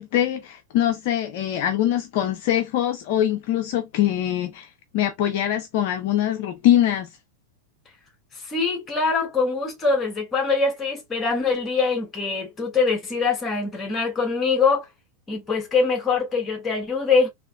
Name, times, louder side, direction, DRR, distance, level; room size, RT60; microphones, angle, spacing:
voice 1, 0.0-4.7 4.9-7.1, left 12 dB, 50° left, 0.6 m, -23 dB
voice 2, 8.4-14.8 15.3-17.3, left 4 dB, 20° left, 1.3 m, -23 dB
3.9 x 2.8 x 2.3 m
figure-of-eight pair, 90°, 0 cm